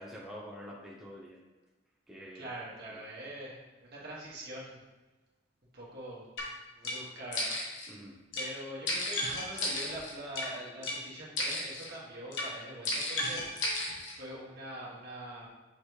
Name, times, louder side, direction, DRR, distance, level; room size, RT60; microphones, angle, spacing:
voice 1, 0.0-1.4 2.1-2.5 2.9-3.0 7.9-8.2, equal, 5° right, -5 dB, 0.7 m, -46 dB
voice 2, 2.3-4.8 5.7-6.3 6.7-7.6 8.3-13.8 14.1-15.5, right 1 dB, 55° right, -5 dB, 1.8 m, -44 dB
sound 1, 6.4-6.5 6.8-7.0 7.3-7.9 8.3-8.5 8.9-10.5 10.8-11.0 11.4-11.9 12.3-12.5 12.9-14.1, left 1 dB, 70° left, 1.4 m, -33 dB
6.5 x 3.3 x 4.7 m, 1.2 s
head